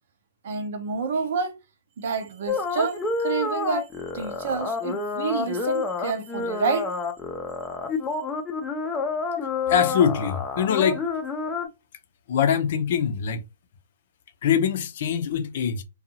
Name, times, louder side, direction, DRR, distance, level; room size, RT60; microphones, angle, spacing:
voice 1, 0.4-1.6 2.0-3.9 4.1-6.9, right 5 dB, 60° right, 0.7 m, -28 dB
sound 1, 2.5-11.7, left 4 dB, 15° left, 0.6 m, -29 dB
voice 2, 9.7-11.0 12.3-13.4 14.4-15.8, left 8 dB, 60° left, 0.6 m, -23 dB
2.7 x 2.3 x 2.7 m
hypercardioid pair, 125°, 0 cm